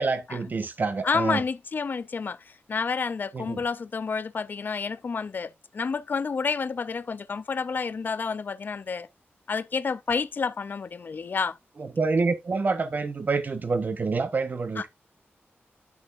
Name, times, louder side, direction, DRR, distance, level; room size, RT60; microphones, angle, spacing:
voice 1, 0.0-1.4 3.3-3.6 11.8-14.9, right 4 dB, 45° right, 1.0 m, -27 dB
voice 2, 1.0-9.1 9.5-11.6 14.8-14.9, left 5 dB, 45° left, 0.5 m, -29 dB
11.0 x 6.0 x 2.5 m
wide cardioid pair, 155°, 4 cm